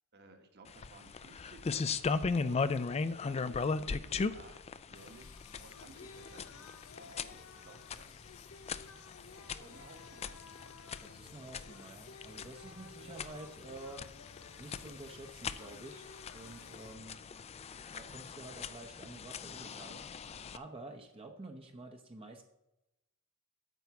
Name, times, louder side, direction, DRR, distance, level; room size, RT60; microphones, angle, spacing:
voice 1, 0.1-2.9 3.2-8.2 9.2-10.4 13.0-13.1, right 2 dB, 50° right, 5 dB, 1.4 m, -57 dB
Singing, 0.7-17.0, left 5 dB, 70° left, 0.7 m, -56 dB
sound 1, 0.7-20.6, left 4 dB, 30° left, 0.4 m, -39 dB
voice 2, 11.0-14.1 14.6-17.2 17.9-22.4, right 2 dB, 25° right, 4 dB, 0.7 m, -49 dB
9.2 x 4.6 x 7.0 m, 0.94 s
head